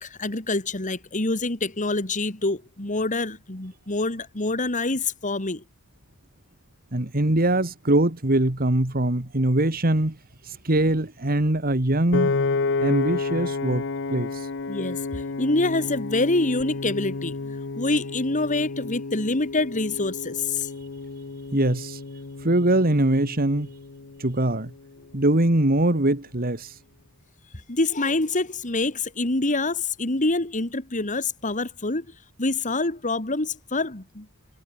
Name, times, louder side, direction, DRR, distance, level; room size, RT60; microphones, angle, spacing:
voice 1, 0.0-5.6 14.7-20.7 27.7-32.1 32.4-34.3, left 2 dB, 35° left, 2.3 m, -26 dB
voice 2, 6.9-10.2 10.6-12.3 12.8-14.3 21.5-22.0 22.4-23.7 24.2-24.7 25.1-26.7, right 1 dB, 45° right, 2.1 m, -22 dB
Piano, 12.1-24.4, left 3 dB, 55° left, 0.9 m, -30 dB
head